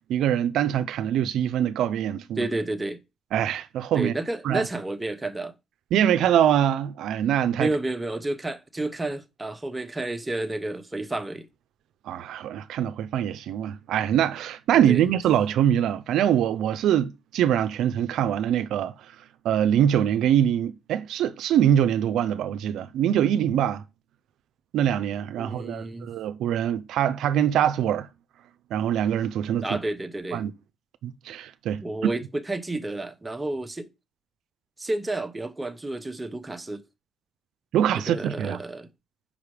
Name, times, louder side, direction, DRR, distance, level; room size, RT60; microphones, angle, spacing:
voice 1, 0.1-2.5 3.3-4.1 4.4-4.7 5.9-7.7 12.1-18.9 19.4-23.8 24.7-28.1 28.7-29.8 30.3-30.5 31.0-32.1 37.7-38.6, right 10 dB, 80° right, 0.4 m, -23 dB
voice 2, 2.4-3.0 3.9-5.5 7.6-11.5 14.9-15.0 25.4-26.1 29.6-30.4 31.8-33.9 34.8-36.8 38.1-38.9, right 2 dB, 15° right, 0.9 m, -30 dB
5.3 x 5.0 x 4.9 m
cardioid pair, 90°, 0 cm